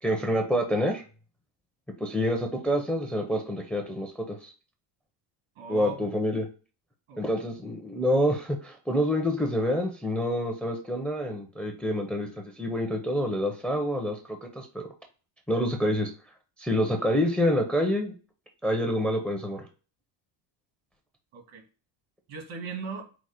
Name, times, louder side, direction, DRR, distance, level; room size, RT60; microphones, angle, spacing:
voice 1, 0.0-1.0 2.0-4.5 5.7-6.5 7.2-12.3 12.6-14.2 14.5-14.9 15.5-16.1 16.6-18.1 18.6-19.7, equal, 5° left, 3 dB, 0.4 m, -27 dB
voice 2, 5.6-6.1 7.1-7.5 21.3-21.6 22.3-23.0, right 4 dB, 80° right, 4 dB, 1.5 m, -38 dB
4.8 x 2.0 x 4.2 m, 0.35 s
cardioid pair, 130°, 48 cm